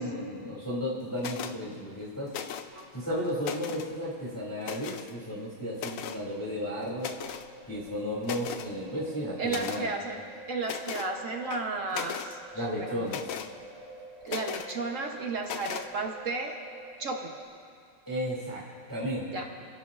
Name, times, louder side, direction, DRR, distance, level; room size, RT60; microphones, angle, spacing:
voice 1, 0.0-2.3 2.9-7.1 7.7-9.9 12.5-13.2 18.1-18.6 18.9-19.3, equal, 10° left, -7 dB, 2.3 m, -33 dB
sound 1, 1.2-1.6 2.3-2.8 3.2-3.9 4.6-5.1 5.8-6.2 7.0-7.5 7.9-8.0 8.2-8.7 9.5-9.8 10.6-11.1 11.5-12.3 13.1-13.5 14.3-14.7 15.4-15.9, left 8 dB, 85° left, 0.7 m, -37 dB
sound 2, 7.1-17.5, right 2 dB, 90° right, 3.0 m, -48 dB
voice 2, 9.4-10.2 10.5-13.1 14.2-16.6 17.0-17.3 19.3-19.5, right 3 dB, 50° right, 2 dB, 1.1 m, -33 dB
29.5 x 11.0 x 2.5 m, 2.4 s
omnidirectional pair, 2.0 m